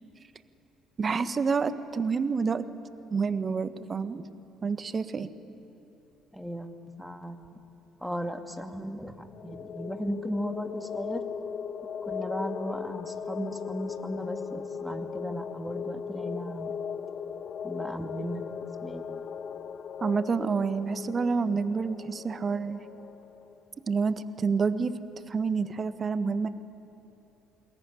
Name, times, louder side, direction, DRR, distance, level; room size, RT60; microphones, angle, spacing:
voice 1, 1.0-2.7 3.1-4.3 4.6-5.3 20.0-22.8 23.9-24.9 25.3-26.5, right 5 dB, 35° right, 11 dB, 1.5 m, -28 dB
voice 2, 6.3-7.4 8.0-11.2 12.1-16.8 17.6-19.2, equal, ahead, 5 dB, 2.5 m, -36 dB
sound 1, 9.2-23.6, left 7 dB, 45° left, 1.0 m, -38 dB
27.0 x 21.0 x 10.0 m, 2.9 s
figure-of-eight pair, 50°, 0 cm